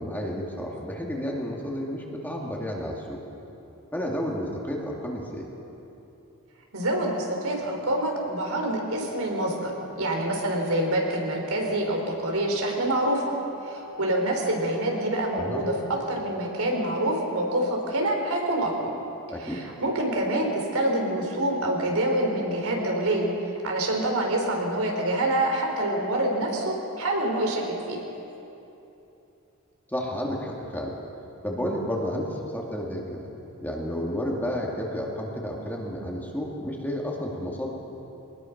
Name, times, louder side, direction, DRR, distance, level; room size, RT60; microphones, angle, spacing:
voice 1, 0.0-3.2 3.9-5.5 15.3-15.6 19.3-19.6 29.9-30.9 31.4-33.3 33.6-37.7, equal, 10° left, -2 dB, 2.3 m, -31 dB
voice 2, 6.7-9.7 10.0-13.3 13.6-15.7 16.1-18.9 19.4-23.3 23.6-28.0, right 1 dB, 80° right, 1 dB, 3.9 m, -26 dB
22.5 x 19.5 x 6.0 m, 2.9 s
head